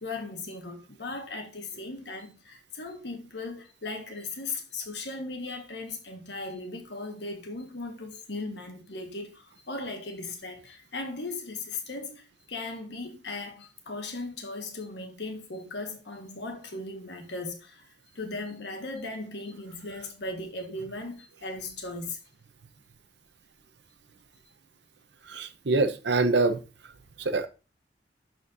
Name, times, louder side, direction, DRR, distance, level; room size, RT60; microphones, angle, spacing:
voice 1, 0.0-17.8 18.1-22.2, left 2 dB, 70° left, 1.4 m, -37 dB
voice 2, 25.3-26.6 27.2-27.5, right 3 dB, 70° right, 0.7 m, -25 dB
11.0 x 4.4 x 2.6 m
head